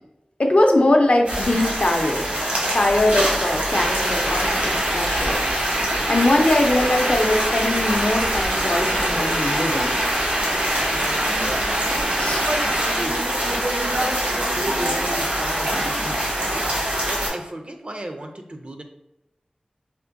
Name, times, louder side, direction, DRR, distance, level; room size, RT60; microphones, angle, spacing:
voice 1, 0.4-2.2 2.7-5.4 6.1-10.0 12.2-12.5, left 1 dB, 55° left, 2 dB, 0.5 m, -21 dB
sound 1, 1.2-17.3, right 1 dB, 70° right, 1.1 m, -24 dB
sound 2, 3.7-13.0, right 1 dB, 90° right, 0.8 m, -27 dB
voice 2, 10.6-11.9 12.4-13.3 13.8-18.8, right 1 dB, 45° right, 4 dB, 0.4 m, -34 dB
3.6 x 2.5 x 2.5 m, 0.89 s
wide cardioid pair, 55°, 3 cm